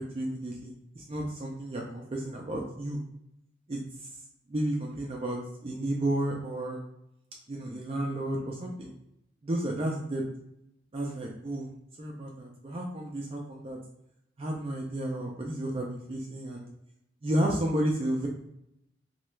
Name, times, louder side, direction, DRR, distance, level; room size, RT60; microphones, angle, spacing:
voice 1, 0.0-3.0 3.7-4.1 4.5-6.8 7.5-8.9 9.4-10.2 10.9-11.7 12.0-13.8 14.4-16.7 17.2-18.3, right 1 dB, 35° right, -1 dB, 0.4 m, -32 dB
3.0 x 2.2 x 3.1 m, 0.80 s
head